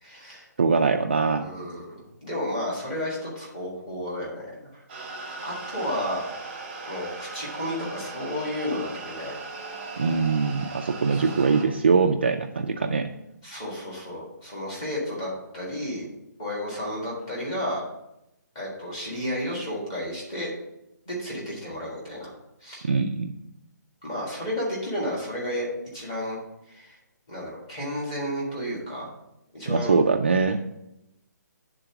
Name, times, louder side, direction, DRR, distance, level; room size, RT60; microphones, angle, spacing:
voice 1, 0.0-0.4 1.4-4.8 5.4-6.2 6.9-9.4 11.1-11.2 13.4-16.0 16.4-17.8 18.5-20.5 21.1-22.3 22.6-22.9 24.0-25.7 25.9-26.4 26.7-26.9 27.3-29.1 29.5-30.0, equal, 15° left, -4 dB, 1.6 m, -32 dB
voice 2, 0.6-1.5 10.0-13.1 22.8-23.3 29.7-30.6, right 4 dB, 35° right, 4 dB, 0.3 m, -22 dB
sound 1, 4.9-11.6, right 3 dB, 15° right, 0.9 m, -38 dB
7.9 x 3.8 x 5.8 m, 0.86 s
hypercardioid pair, 180°, 10 cm